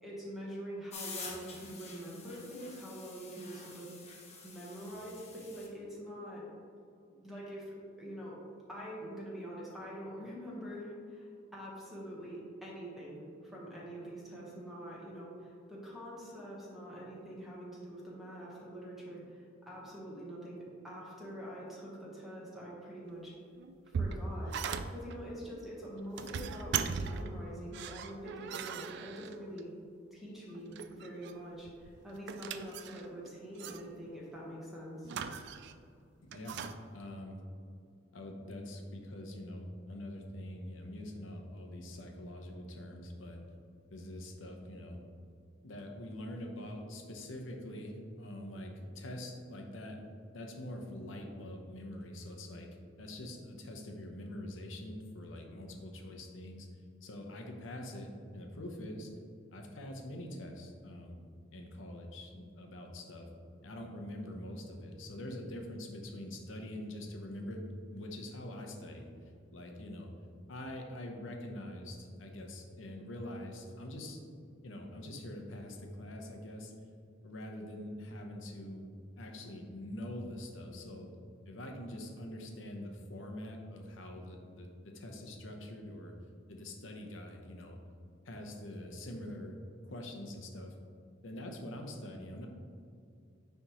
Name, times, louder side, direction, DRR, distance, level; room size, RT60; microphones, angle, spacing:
voice 1, 0.0-3.9 4.4-6.4 7.2-8.4 8.7-23.3 24.0-24.5 24.9-26.8 27.0-29.7 30.1-35.1, equal, ahead, -6 dB, 1.2 m, -45 dB
sound 1, 0.9-5.7, left 4 dB, 35° left, 1.0 m, -48 dB
sound 2, 23.6-25.2 26.0-27.4 27.7-29.6 30.5-31.4 31.7-33.3 33.6-33.8 35.0-35.8 36.3-36.8, right 6 dB, 60° right, 0.3 m, -38 dB
voice 2, 36.3-36.6 36.9-37.4 38.1-43.4 43.9-45.0 45.6-50.0 50.3-52.7 53.0-56.7 57.0-59.1 59.5-61.2 61.5-63.3 63.6-67.6 67.9-69.1 69.5-70.1 70.5-74.2 74.6-76.7 77.2-78.9 79.2-81.1 81.4-86.1 86.5-87.8 88.2-90.7 91.2-92.5, left 1 dB, 70° left, 2 dB, 0.8 m, -44 dB
9.6 x 3.4 x 3.0 m, 2.4 s
head